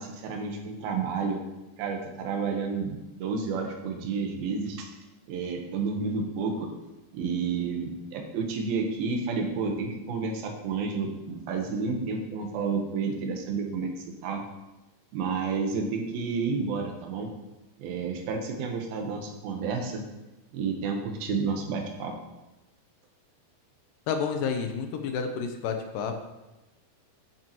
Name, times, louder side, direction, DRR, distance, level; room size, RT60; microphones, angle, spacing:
voice 1, 0.0-1.4 1.8-4.9 5.3-6.7 7.1-13.9 14.2-14.4 15.1-17.3 17.8-20.0 20.5-22.2, right 4 dB, 85° right, 3 dB, 2.9 m, -30 dB
voice 2, 24.1-26.1, left 6 dB, 80° left, 5 dB, 2.3 m, -30 dB
10.5 x 9.0 x 3.0 m, 1.0 s
omnidirectional pair, 4.1 m